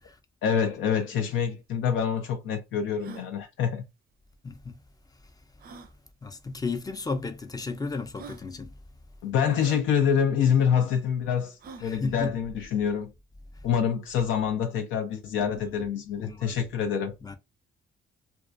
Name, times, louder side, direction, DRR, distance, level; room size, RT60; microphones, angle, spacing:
voice 1, 0.4-3.8 9.2-13.1 13.6-17.1, left 7 dB, 80° left, 0.5 m, -26 dB
sound 1, 1.4-1.5 1.7-1.8 2.3-2.4 2.9-3.3 4.6-4.7 5.6-5.9 6.9-7.0 7.7-7.8 8.1-8.5 9.6-9.8 11.6-11.9, right 5 dB, 50° right, 0.5 m, -45 dB
voice 2, 4.4-4.8 6.2-8.7 11.8-12.3 15.4-15.5 16.2-16.6 17.2-17.4, left 4 dB, 20° left, 0.4 m, -33 dB
2.2 x 2.2 x 2.4 m
cardioid pair, 90°, 20 cm